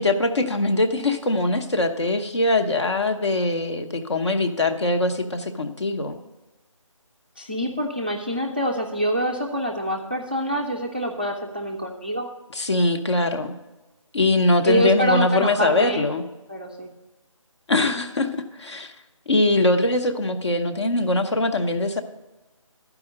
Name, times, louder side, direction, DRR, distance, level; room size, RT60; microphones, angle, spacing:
voice 1, 0.0-6.2 12.5-13.5 14.1-16.2 17.7-18.3 18.6-18.9 19.3-22.0, left 2 dB, 55° left, 6 dB, 0.9 m, -22 dB
voice 2, 7.4-12.3 14.7-16.1 16.5-16.9, equal, 15° right, 1 dB, 0.4 m, -25 dB
11.5 x 4.9 x 6.5 m, 1.1 s
figure-of-eight pair, 170°, 17 cm